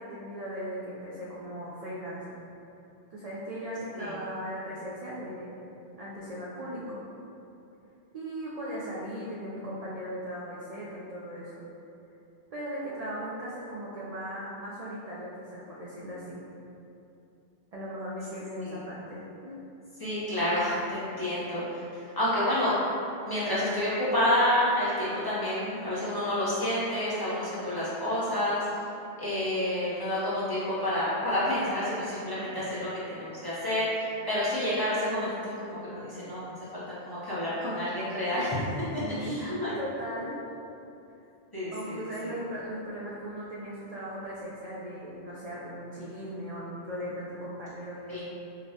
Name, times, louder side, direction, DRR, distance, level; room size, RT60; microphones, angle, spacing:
voice 1, 0.0-2.4 3.1-5.6 6.0-7.0 8.1-11.6 12.5-16.4 17.7-19.6 32.6-32.8 39.0-40.4 41.7-48.2, equal, 60° right, -6 dB, 0.4 m, -38 dB
voice 2, 20.0-22.8 23.2-28.6 29.2-38.6 38.9-39.7 41.5-42.3 48.1-48.2, left 1 dB, 25° left, -11 dB, 0.7 m, -29 dB
4.9 x 2.1 x 2.7 m, 2.8 s
omnidirectional pair, 1.2 m